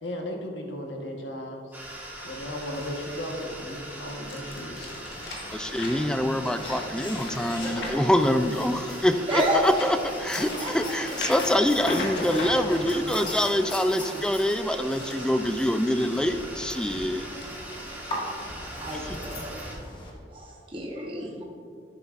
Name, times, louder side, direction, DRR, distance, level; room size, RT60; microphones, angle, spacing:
voice 1, 0.0-1.7 2.2-4.8, left 1 dB, 90° left, 1 dB, 1.2 m, -35 dB
sound 1, 1.7-19.7, right 1 dB, 10° right, 1.4 m, -41 dB
sound 2, 2.7-8.9 9.3-13.4 14.7-16.1 16.5-16.8 17.4-17.5, left 2 dB, 70° left, 1.5 m, -39 dB
sound 3, 4.8-20.1, left 1 dB, 25° left, 1.4 m, -39 dB
voice 2, 5.5-17.3 18.9-19.2, left 1 dB, 5° left, 9 dB, 0.3 m, -25 dB
voice 3, 9.3-9.6 10.6-10.7 18.5-19.8 20.3-21.4, equal, 30° right, -2 dB, 0.9 m, -30 dB
10.5 x 7.9 x 2.5 m, 2.5 s
head